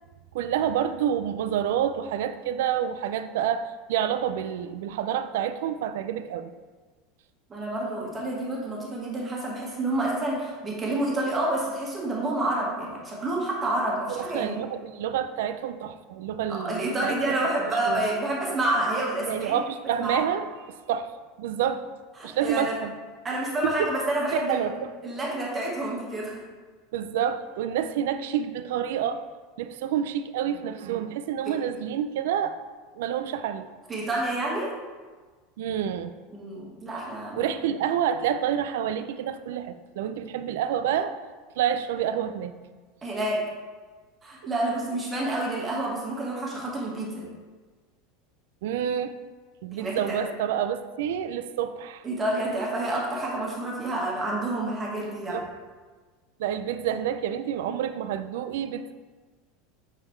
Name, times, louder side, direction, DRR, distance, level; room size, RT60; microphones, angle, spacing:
voice 1, 0.3-6.5 14.1-17.3 17.6-18.1 19.3-20.5 20.9-21.1 21.4-21.8 22.2-22.9 23.6-23.9 24.3-24.9 26.9-29.2 29.6-32.6 32.9-33.7 35.6-36.1 37.4-41.2 41.6-42.6 48.6-49.1 49.6-52.0 55.3-55.5 56.4-58.9, right 9 dB, 80° right, 11 dB, 0.4 m, -28 dB
voice 2, 7.5-14.6 16.5-19.6 20.0-20.2 22.2-22.8 23.2-24.6 25.0-26.4 33.9-34.7 36.3-37.5 43.0-43.4 44.2-47.3 49.7-50.2 52.0-55.4, right 1 dB, 20° right, -4 dB, 1.6 m, -28 dB
8.9 x 3.9 x 3.2 m, 1.4 s
supercardioid pair, 130°, 0 cm